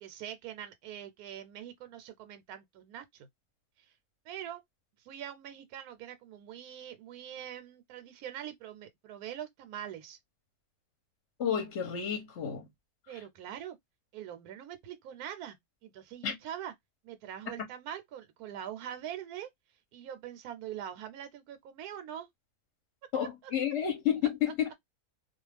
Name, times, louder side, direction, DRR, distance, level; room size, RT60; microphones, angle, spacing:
voice 1, 0.0-3.3 3.8-3.9 4.3-4.6 5.0-10.2 13.1-13.8 14.1-15.6 15.8-16.7 17.0-19.5 19.9-22.3 23.2-23.3, right 10 dB, 80° right, 1.1 m, -43 dB
voice 2, 11.4-12.7 16.2-16.4 17.6-17.7 23.1-24.8, left 9 dB, 55° left, 0.9 m, -31 dB
2.4 x 2.3 x 3.2 m
omnidirectional pair, 1.6 m